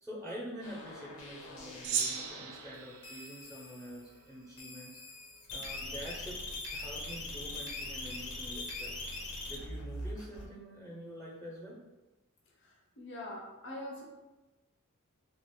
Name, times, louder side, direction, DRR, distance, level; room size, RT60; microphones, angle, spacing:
voice 1, 0.0-5.0 5.5-6.4 6.7-9.0 9.5-11.8, equal, ahead, -3 dB, 0.6 m, -46 dB
sound 1, 0.6-2.7 3.0-4.0 4.6-10.5, left 2 dB, 85° left, 0.9 m, -42 dB
Gong, 1.8-4.5, right 7 dB, 80° right, 0.4 m, -38 dB
voice 2, 12.6-14.0, left 1 dB, 55° left, -1 dB, 0.6 m, -44 dB
3.3 x 2.4 x 3.6 m, 1.1 s
head